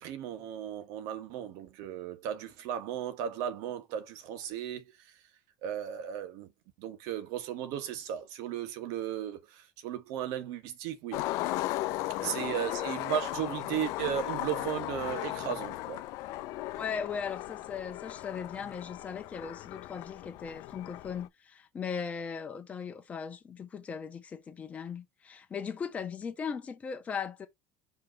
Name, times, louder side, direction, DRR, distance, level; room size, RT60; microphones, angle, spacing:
voice 1, 0.0-5.1 5.6-6.5 6.8-11.2 12.2-16.0, right 10 dB, 75° right, 1.5 m, -35 dB
Skateboard, 11.1-21.3, left 16 dB, 65° left, 0.6 m, -36 dB
voice 2, 11.9-12.4 16.7-27.5, left 6 dB, 25° left, 1.3 m, -38 dB
5.4 x 3.3 x 5.2 m
cardioid pair, 145°, 6 cm